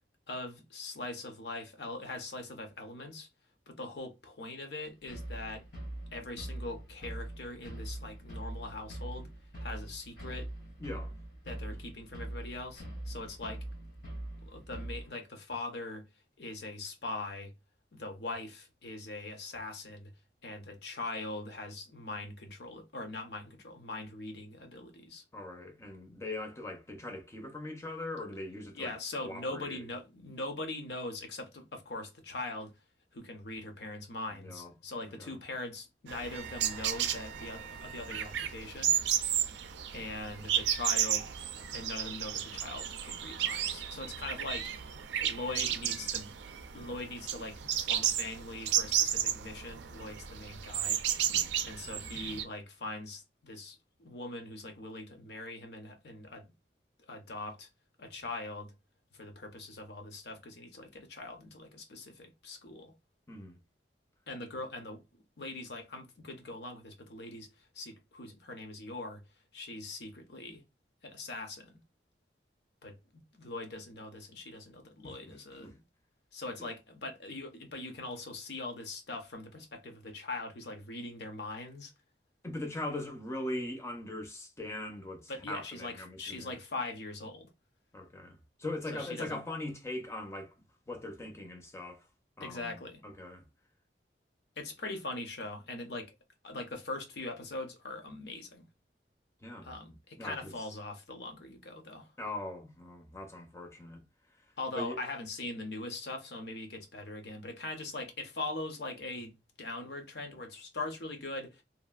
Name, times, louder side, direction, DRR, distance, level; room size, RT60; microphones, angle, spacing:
voice 1, 0.3-3.3 3.7-5.6 6.1-9.3 9.6-10.5 11.4-13.6 14.4-16.1 16.4-17.5 17.9-20.1 20.4-25.2 28.7-32.7 33.1-39.0 39.9-41.3 41.7-46.3 46.7-51.0 51.6-56.5 57.1-57.7 58.0-58.7 59.1-62.9 64.3-65.0 65.4-69.2 69.5-70.6 71.0-71.8 72.8-75.8 76.3-81.9 85.3-87.5 88.9-89.4 92.4-93.0 94.6-96.1 96.4-98.7 99.6-102.1 104.6-109.3 109.6-111.6, left 2 dB, 70° left, 0.7 m, -41 dB
sound 1, 5.0-15.1, right 1 dB, 85° left, 1.8 m, -42 dB
voice 2, 10.8-11.2 11.7-11.8 25.3-28.9 29.2-29.8 34.3-34.7 35.2-35.4 51.3-51.6 63.3-63.6 75.0-75.2 75.6-75.7 82.4-86.5 87.9-90.5 90.9-92.1 92.4-93.4 99.4-99.7 100.2-100.5 102.2-104.0 104.4-104.5 104.7-105.0, left 2 dB, 15° left, 0.5 m, -41 dB
sound 2, 36.1-52.4, right 10 dB, 85° right, 0.4 m, -33 dB
Trumpet, 36.3-38.6, right 9 dB, 35° right, 0.6 m, -48 dB
2.9 x 2.4 x 2.3 m
head